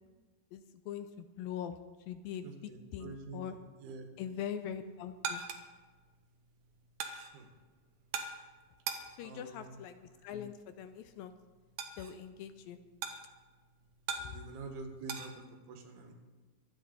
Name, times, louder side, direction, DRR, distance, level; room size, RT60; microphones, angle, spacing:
voice 1, 0.5-1.7 2.1-3.6 4.2-5.4 9.2-11.3 12.0-12.8, left 9 dB, 80° left, 9 dB, 2.2 m, -42 dB
voice 2, 2.4-4.1 7.3-7.5 9.2-9.8 14.2-16.1, right 3 dB, 90° right, 4 dB, 3.6 m, -47 dB
sound 1, 4.6-15.3, right 6 dB, 70° right, 1.7 m, -44 dB
24.0 x 9.4 x 4.0 m, 1.3 s
omnidirectional pair, 4.5 m